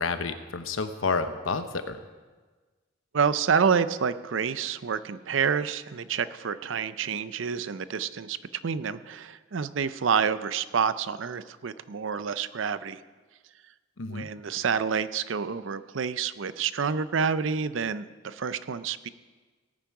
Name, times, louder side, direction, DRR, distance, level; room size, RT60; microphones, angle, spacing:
voice 1, 0.0-2.0 14.0-14.3, left 4 dB, 75° left, 9 dB, 0.9 m, -30 dB
voice 2, 3.1-8.4 8.6-13.0 14.1-19.1, right 6 dB, 70° right, 14 dB, 0.5 m, -28 dB
18.0 x 9.1 x 4.8 m, 1.4 s
head